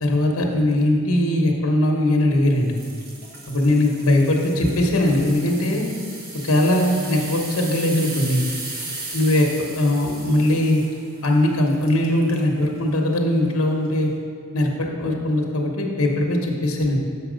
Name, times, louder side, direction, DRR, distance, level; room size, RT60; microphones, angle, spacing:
voice 1, 0.0-2.7 3.5-5.9 6.4-8.5 9.1-9.5 9.8-10.8 11.2-14.1 14.5-17.0, left 1 dB, 80° left, 1 dB, 1.0 m, -20 dB
sound 1, 2.6-12.5 13.0-13.2 13.8-13.9, right 2 dB, 45° right, 1.2 m, -36 dB
7.1 x 5.7 x 5.1 m, 2.3 s
head